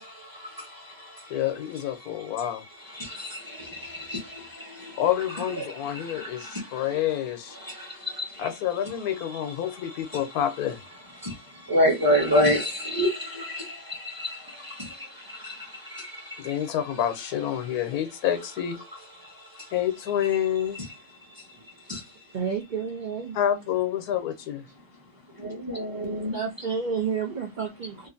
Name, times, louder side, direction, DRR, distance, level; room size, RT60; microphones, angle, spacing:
voice 1, 0.0-1.4 2.0-5.0 5.3-7.0 7.5-8.5 9.6-10.3 11.2-16.8 19.2-19.7 20.8-20.9 21.2-21.6 21.9-22.1 25.4-26.4, equal, 20° right, 0.7 m, -30 dB
voice 2, 1.3-2.6 5.0-7.6 8.4-10.8 16.4-18.8 19.7-20.8 23.3-24.6, left 10 dB, 85° left, 1.2 m, -28 dB
voice 3, 22.3-23.4 26.2-28.1, right 6 dB, 75° right, 0.4 m, -30 dB
2.9 x 2.5 x 2.5 m
omnidirectional pair, 1.6 m